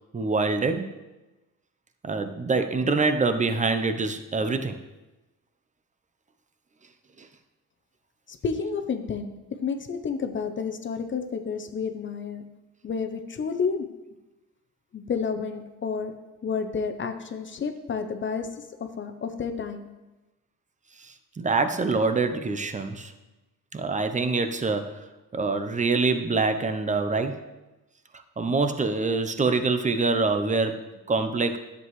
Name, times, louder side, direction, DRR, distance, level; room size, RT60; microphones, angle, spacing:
voice 1, 0.1-1.0 2.0-4.8 7.2-7.3 21.0-23.1 23.7-25.1 25.3-27.5 28.4-31.6, right 3 dB, 25° right, 9 dB, 0.8 m, -25 dB
voice 2, 8.3-9.3 9.6-12.4 12.8-13.9 14.9-16.1 16.4-19.9, left 5 dB, 40° left, 8 dB, 0.8 m, -30 dB
10.5 x 7.7 x 3.2 m, 1.1 s
cardioid pair, 90°, 30 cm